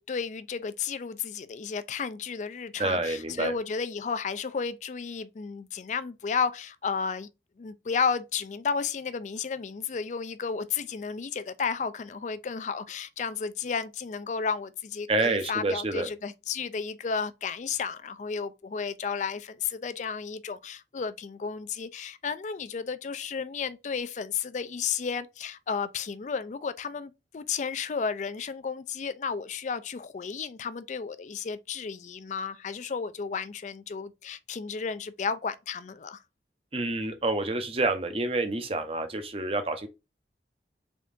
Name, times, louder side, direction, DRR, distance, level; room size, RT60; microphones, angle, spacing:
voice 1, 0.0-7.3 7.6-36.2, left 6 dB, 45° left, 0.3 m, -33 dB
voice 2, 2.8-3.5 15.1-16.1 36.7-39.9, right 2 dB, 35° right, 0.7 m, -28 dB
3.7 x 3.5 x 2.5 m
head